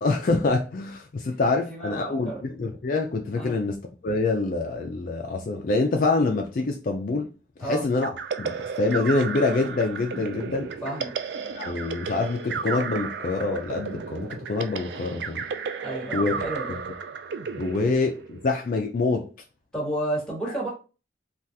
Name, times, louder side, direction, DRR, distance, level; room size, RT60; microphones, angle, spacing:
voice 1, 0.0-3.8 4.0-7.3 7.6-8.1 8.4-10.7 11.5-15.4 16.1-16.4 17.6-19.3 20.5-20.6, left 3 dB, 50° left, 2 dB, 0.4 m, -26 dB
voice 2, 1.5-2.4 3.4-3.6 7.6-7.9 10.8-11.1 15.8-16.7 19.7-20.7, right 1 dB, 5° left, -4 dB, 1.2 m, -31 dB
sound 1, 8.0-18.6, right 6 dB, 70° right, 0.3 m, -33 dB
3.4 x 2.3 x 2.7 m, 0.34 s
head